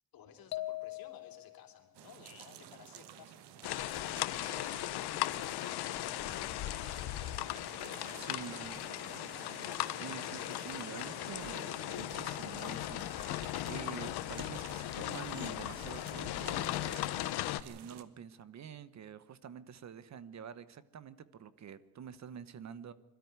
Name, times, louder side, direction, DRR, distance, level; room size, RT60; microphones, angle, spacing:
voice 1, 0.1-8.4, left 8 dB, 60° left, 4 dB, 3.4 m, -57 dB
sound 1, 0.5-1.7, left 16 dB, 45° left, 0.7 m, -40 dB
sound 2, 1.9-18.0, right 11 dB, 85° right, 1.4 m, -52 dB
sound 3, 3.6-17.6, left 15 dB, 75° left, 0.9 m, -38 dB
voice 2, 8.1-8.8 9.9-17.1 17.6-22.9, right 8 dB, 45° right, 16 dB, 1.0 m, -47 dB
21.5 x 13.0 x 9.5 m, 1.3 s
cardioid pair, 120°, 39 cm